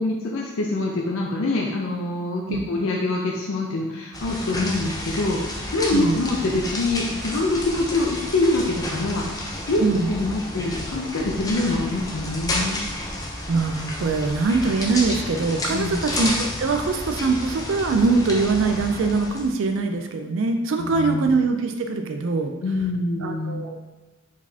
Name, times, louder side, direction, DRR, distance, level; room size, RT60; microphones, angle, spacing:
voice 1, 0.0-12.8 15.7-16.1 20.8-21.3 22.6-23.6, left 2 dB, 70° left, -2 dB, 0.5 m, -25 dB
sound 1, 4.1-19.5, left 1 dB, 15° left, 0.5 m, -31 dB
voice 2, 9.8-10.1 13.5-22.5 23.2-23.8, right 3 dB, 60° right, 6 dB, 0.4 m, -23 dB
4.7 x 4.0 x 2.8 m, 1.2 s
head